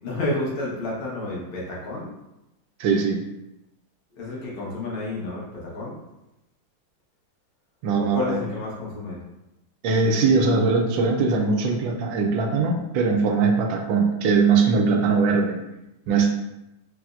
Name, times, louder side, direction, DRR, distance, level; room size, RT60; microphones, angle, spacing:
voice 1, 0.0-2.1 4.1-6.0 8.0-9.2, left 2 dB, 75° left, -5 dB, 1.9 m, -30 dB
voice 2, 2.8-3.3 7.8-8.3 9.8-15.6 16.1-16.3, right 4 dB, 75° right, 2 dB, 1.2 m, -21 dB
4.8 x 3.0 x 2.4 m, 0.92 s
omnidirectional pair, 2.2 m